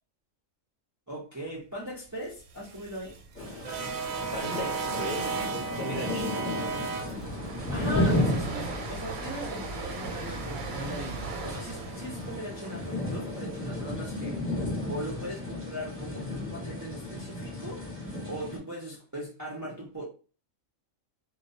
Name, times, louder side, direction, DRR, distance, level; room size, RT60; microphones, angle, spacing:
voice 1, 1.1-3.2 7.7-14.4 14.8-17.8 18.2-20.0, right 1 dB, 25° right, 0.4 m, -39 dB
sound 1, 2.4-14.6, right 5 dB, 85° right, 1.0 m, -36 dB
sound 2, 3.4-18.6, left 1 dB, 10° left, 0.9 m, -34 dB
voice 2, 4.3-6.5, equal, 50° left, 0.7 m, -37 dB
2.2 x 2.2 x 2.6 m
omnidirectional pair, 1.4 m